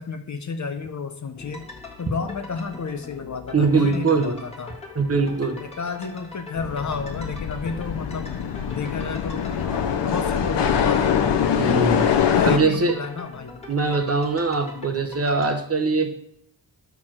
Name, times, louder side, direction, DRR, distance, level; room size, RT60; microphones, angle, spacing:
voice 1, 0.0-1.7 2.0-4.8 5.6-8.3 8.7-11.3 12.0-13.6 14.7-15.0, left 4 dB, 45° left, 7 dB, 0.7 m, -32 dB
sound 1, 1.3-15.5, left 3 dB, 15° left, 1.6 m, -42 dB
voice 2, 3.5-4.3 5.0-5.6 11.6-13.0 13.7-16.1, right 4 dB, 35° right, 5 dB, 1.0 m, -22 dB
sound 2, 6.6-12.6, left 8 dB, 75° left, 0.8 m, -23 dB
5.9 x 4.7 x 6.1 m, 0.74 s
wide cardioid pair, 95°, 42 cm